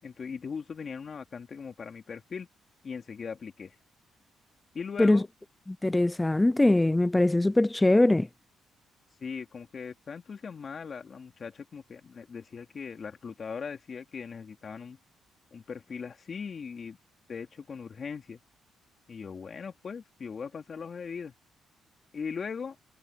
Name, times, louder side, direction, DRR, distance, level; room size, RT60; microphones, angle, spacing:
voice 1, 0.0-2.5 2.8-3.7 4.7-5.3 9.2-15.0 15.5-17.0 17.3-18.4 19.1-21.3 22.1-22.8, left 6 dB, 45° left, 3.6 m, -39 dB
voice 2, 5.8-8.3, left 2 dB, 10° left, 0.4 m, -22 dB
cardioid pair, 90°, 0 cm